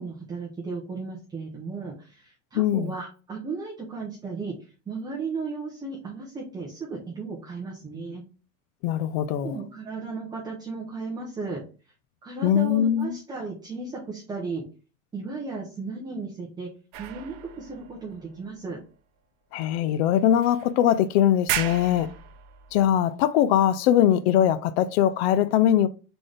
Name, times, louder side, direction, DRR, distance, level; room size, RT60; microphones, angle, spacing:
voice 1, 0.0-8.2 9.4-11.6 12.2-14.6 15.1-16.7 17.0-18.8, right 4 dB, 10° right, 0.7 m, -35 dB
voice 2, 2.6-2.9 8.8-9.6 12.4-13.2 19.5-22.1 22.7-25.9, left 11 dB, 60° left, 0.4 m, -21 dB
sound 1, 16.9-18.9 19.6-19.7 20.4-21.0 21.3-22.9, right 11 dB, 50° right, 0.7 m, -35 dB
3.9 x 3.8 x 3.3 m
supercardioid pair, 150°, 40 cm